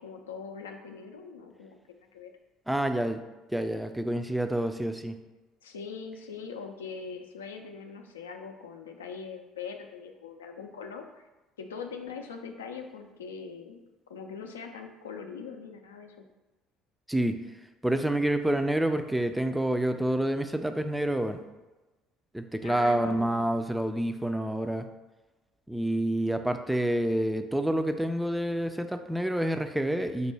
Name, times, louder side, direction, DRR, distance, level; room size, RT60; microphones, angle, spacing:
voice 1, 0.0-2.3 5.6-11.3 11.6-13.8 14.1-16.2 22.6-23.3, left 5 dB, 80° left, 4 dB, 0.4 m, -42 dB
voice 2, 2.7-3.2 3.5-5.1 17.1-17.4 17.8-21.4 22.3-24.9 25.7-30.3, right 1 dB, 5° right, 7 dB, 0.3 m, -28 dB
5.4 x 2.1 x 3.2 m, 1.1 s
figure-of-eight pair, 60°, 0 cm